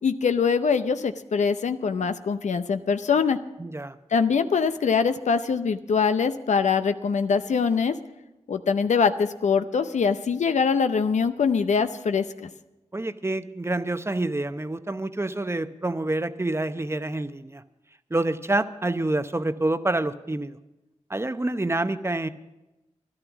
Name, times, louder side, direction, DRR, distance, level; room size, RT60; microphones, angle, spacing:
voice 1, 0.0-3.4 4.1-7.9 8.5-12.5, left 5 dB, 80° left, 10 dB, 0.6 m, -23 dB
voice 2, 3.6-4.0 12.9-17.6 18.1-20.6 21.1-22.3, right 2 dB, 20° right, 11 dB, 0.8 m, -27 dB
12.5 x 11.5 x 6.1 m, 1.0 s
cardioid pair, 40°, 12 cm